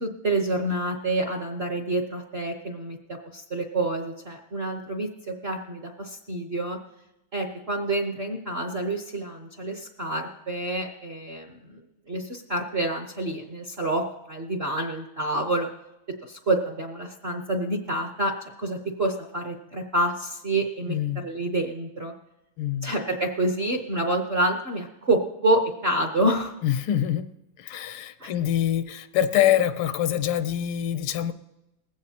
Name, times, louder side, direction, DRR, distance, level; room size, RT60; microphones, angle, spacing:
voice 1, 0.0-3.0 3.3-6.8 7.3-11.8 12.1-15.7 16.2-21.0 21.2-22.1 22.8-26.5 28.2-28.3, right 1 dB, 45° right, 3 dB, 0.8 m, -28 dB
voice 2, 20.9-21.2 22.6-22.9 26.6-31.3, left 11 dB, 80° left, 11 dB, 1.5 m, -25 dB
20.0 x 16.0 x 2.8 m, 0.93 s
omnidirectional pair, 2.4 m